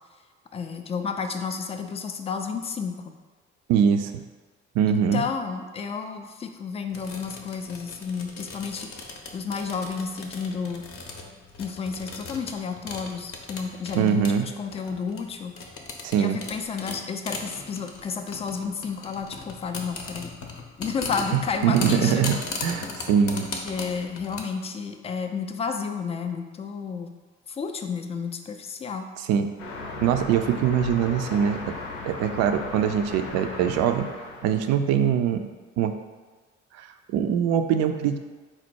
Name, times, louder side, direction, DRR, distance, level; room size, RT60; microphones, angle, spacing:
voice 1, 0.5-3.0 4.9-10.9 11.6-15.6 16.2-20.4 20.8-22.2 22.5-22.6 23.3-27.1 27.5-29.1, left 5 dB, 20° left, 6 dB, 0.3 m, -31 dB
voice 2, 3.7-4.1 4.7-5.2 14.0-14.5 16.0-16.4 21.6-22.4 22.6-23.4 29.3-29.5 30.0-31.6 32.1-34.1 34.4-35.5 35.8-35.9 36.8-38.2, right 8 dB, 50° right, 7 dB, 0.4 m, -22 dB
sound 1, 6.9-24.4, left 3 dB, 40° left, 0.7 m, -38 dB
sound 2, 29.6-34.6, left 3 dB, 75° left, 0.7 m, -37 dB
4.3 x 2.1 x 4.5 m, 1.3 s
figure-of-eight pair, 45°, 35 cm